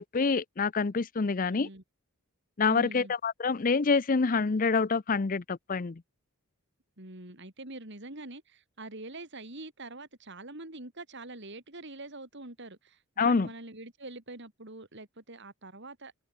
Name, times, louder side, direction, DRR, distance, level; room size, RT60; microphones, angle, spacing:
voice 1, 0.0-1.7 2.6-6.0 13.2-13.5, left 4 dB, 40° left, 0.5 m, -27 dB
voice 2, 1.5-1.8 2.7-3.1 7.0-16.2, right 2 dB, 55° right, 3.5 m, -44 dB
head